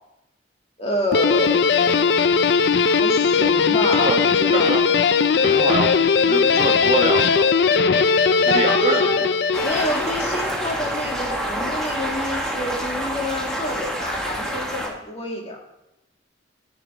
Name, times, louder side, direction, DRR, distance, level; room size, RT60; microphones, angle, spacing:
voice 1, 0.8-2.0 2.8-4.8 8.5-9.3 9.6-15.6, left 1 dB, 30° left, 0 dB, 2.0 m, -28 dB
Guitar, 1.1-10.4, left 5 dB, 60° left, 0.4 m, -18 dB
voice 2, 4.0-4.8 5.4-5.9 6.3-7.5 8.4-9.0, right 2 dB, 30° right, 3 dB, 1.2 m, -25 dB
sound 1, 9.5-14.9, equal, 5° left, 1.6 m, -27 dB
10.5 x 9.1 x 4.9 m, 0.88 s
head